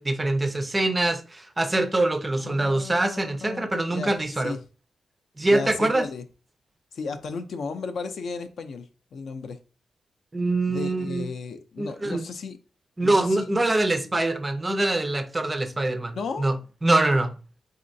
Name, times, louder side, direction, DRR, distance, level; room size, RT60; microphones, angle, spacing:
voice 1, 0.0-4.6 5.4-6.0 10.3-11.3 11.8-12.3 13.0-16.6 16.8-17.3, right 2 dB, 15° right, 0.4 m, -24 dB
voice 2, 2.4-4.1 4.4-4.6 5.5-6.2 6.9-9.6 10.7-12.6 13.0-13.5 16.1-16.5, left 4 dB, 60° left, 0.5 m, -34 dB
4.2 x 3.8 x 2.6 m
wide cardioid pair, 165°, 0 cm